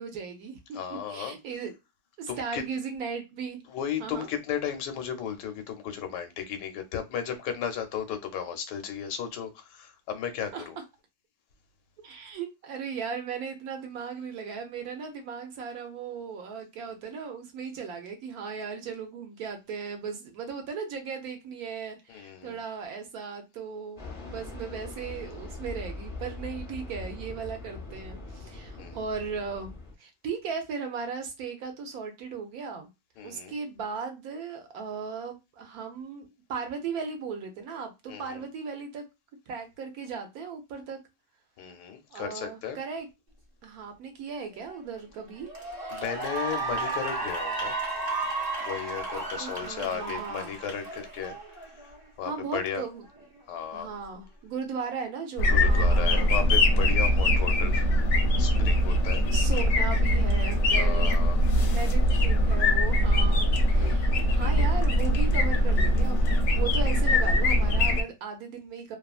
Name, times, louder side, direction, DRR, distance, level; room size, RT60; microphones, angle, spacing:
voice 1, 0.0-1.7 2.2-3.6 4.0-4.3 10.5-10.7 12.0-29.7 30.0-32.9 33.2-39.0 39.5-41.0 42.1-43.1 43.6-45.5 49.4-50.5 52.2-53.0 53.7-56.3 59.3-61.1 61.6-69.0, right 5 dB, 70° right, 1.0 m, -37 dB
voice 2, 0.7-1.4 2.3-2.6 3.7-10.8 22.1-22.6 28.8-29.0 33.2-33.5 38.1-38.4 41.6-42.8 45.9-47.8 48.6-52.8 53.5-53.9 55.5-57.9 58.4-59.3 60.7-61.4 63.8-64.0, left 8 dB, 90° left, 1.2 m, -35 dB
Fixed-wing aircraft airplane, 24.0-29.9, left 2 dB, 30° left, 0.5 m, -41 dB
Cheering / Applause, 44.7-45.0 45.4-52.0, right 3 dB, 50° right, 0.5 m, -33 dB
sound 1, 55.4-68.0, equal, 60° left, 0.8 m, -22 dB
2.8 x 2.3 x 2.3 m
omnidirectional pair, 1.8 m